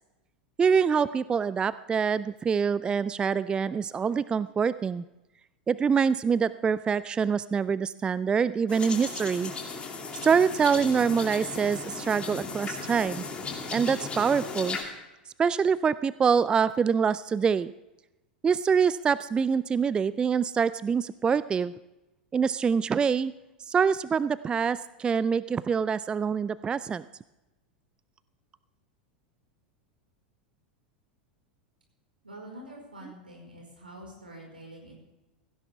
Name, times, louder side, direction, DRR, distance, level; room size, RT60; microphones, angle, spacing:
voice 1, 0.6-5.0 5.7-9.5 10.2-13.2 13.7-14.8 15.4-17.7 18.4-21.7 22.3-23.3 23.7-27.0, right 6 dB, 20° right, 17 dB, 0.3 m, -25 dB
sound 1, 8.7-14.8, left 4 dB, 20° left, 2.6 m, -36 dB
voice 2, 32.2-34.9, right 1 dB, 80° right, 0 dB, 4.8 m, -46 dB
16.5 x 16.0 x 3.5 m, 0.99 s
figure-of-eight pair, 85°, 5 cm